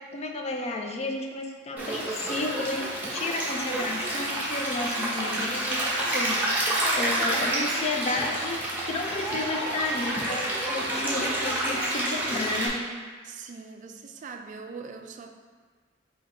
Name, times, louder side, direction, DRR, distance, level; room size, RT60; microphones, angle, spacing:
voice 1, 0.0-12.8, left 2 dB, 35° left, 2 dB, 0.4 m, -32 dB
Stream, 1.8-12.7, right 1 dB, 10° right, 0.8 m, -29 dB
voice 2, 13.2-15.3, right 5 dB, 45° right, 5 dB, 0.3 m, -41 dB
3.9 x 2.9 x 4.3 m, 1.5 s
head